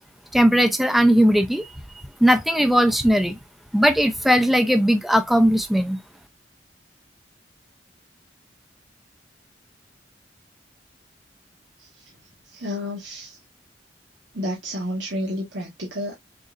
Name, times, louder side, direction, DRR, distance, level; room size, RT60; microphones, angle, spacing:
voice 1, 0.3-1.7 2.2-3.4 3.7-6.0, equal, ahead, 0.4 m, -18 dB
voice 2, 12.5-13.4 14.3-16.1, left 1 dB, 90° right, 1.4 m, -30 dB
6.4 x 2.7 x 2.4 m
head